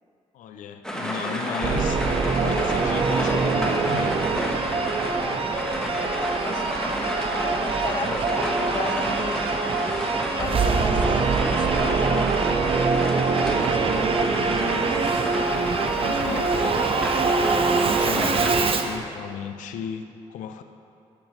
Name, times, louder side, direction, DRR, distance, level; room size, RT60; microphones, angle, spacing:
voice 1, 0.3-4.2 14.3-14.9 16.0-16.9 17.9-20.6, left 7 dB, 75° left, 8 dB, 0.5 m, -35 dB
sound 1, 0.8-18.5, equal, 5° left, 1.4 m, -30 dB
Singing / Musical instrument, 1.6-19.0, right 4 dB, 45° right, 0.6 m, -24 dB
voice 2, 5.0-5.5 5.8-6.2 6.4-7.0 7.4-9.4 10.4-12.8 13.5-14.9 15.9-16.9, left 4 dB, 35° left, 8 dB, 0.6 m, -36 dB
12.0 x 6.0 x 3.2 m, 2.5 s
supercardioid pair, 55°, 13 cm